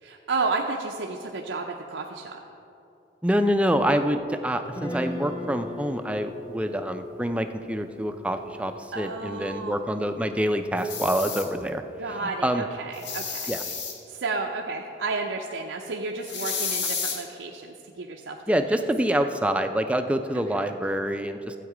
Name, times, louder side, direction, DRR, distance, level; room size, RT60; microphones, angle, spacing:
voice 1, 0.0-2.4 8.9-9.8 12.0-13.8 14.1-18.4 20.5-20.7, right 3 dB, 85° right, 1 dB, 0.6 m, -32 dB
voice 2, 3.2-11.8 12.1-12.6 13.5-13.6 18.5-21.5, equal, 5° right, 7 dB, 0.4 m, -26 dB
Guitar, 4.6-10.8, left 2 dB, 20° left, 0.9 m, -39 dB
sound 1, 10.8-11.4 12.9-13.9 16.2-17.2, left 6 dB, 70° left, 1.5 m, -31 dB
12.5 x 8.1 x 4.9 m, 2.8 s
head